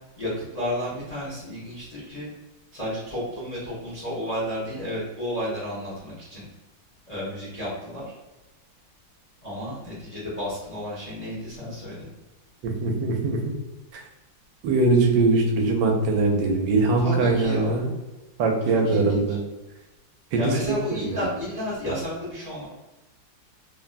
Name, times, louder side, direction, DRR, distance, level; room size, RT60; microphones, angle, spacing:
voice 1, 0.2-2.3 2.7-6.5 7.1-8.1 9.4-12.1 17.0-17.8 18.8-19.4 20.4-22.7, equal, 50° left, -8 dB, 0.4 m, -32 dB
voice 2, 12.6-13.4 13.9-14.0 14.6-17.9 18.4-19.4 20.3-21.2, right 3 dB, 90° right, 2 dB, 1.3 m, -22 dB
3.5 x 2.1 x 2.4 m, 1.1 s
omnidirectional pair, 2.0 m